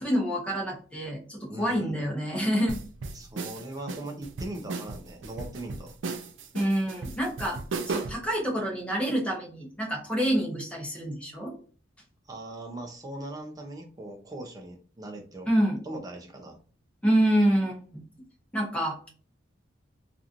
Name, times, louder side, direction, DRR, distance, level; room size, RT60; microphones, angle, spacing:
voice 1, 0.0-2.8 6.5-7.6 7.9-11.5 15.4-15.8 17.0-18.0 18.5-19.1, equal, 5° left, -2 dB, 0.9 m, -27 dB
voice 2, 1.5-2.1 3.1-5.9 12.3-15.5 15.8-16.6, right 1 dB, 20° right, 2 dB, 0.6 m, -40 dB
sound 1, 2.7-8.3, right 3 dB, 75° right, 0.4 m, -36 dB
2.9 x 2.5 x 2.5 m, 0.40 s
head